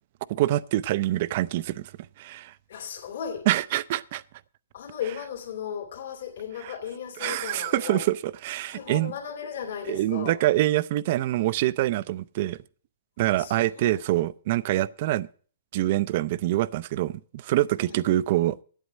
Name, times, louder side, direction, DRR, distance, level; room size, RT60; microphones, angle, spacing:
voice 1, 0.3-1.9 2.2-2.5 3.5-4.2 6.6-6.7 7.2-9.1 9.9-12.6 13.2-15.3 15.7-18.6, right 15 dB, 50° right, 0.5 m, -25 dB
voice 2, 2.7-3.5 4.7-8.0 8.7-10.4 13.4-14.0 17.8-18.0, left 8 dB, 70° left, 2.7 m, -36 dB
8.9 x 8.2 x 6.2 m
hypercardioid pair, 130°, 0 cm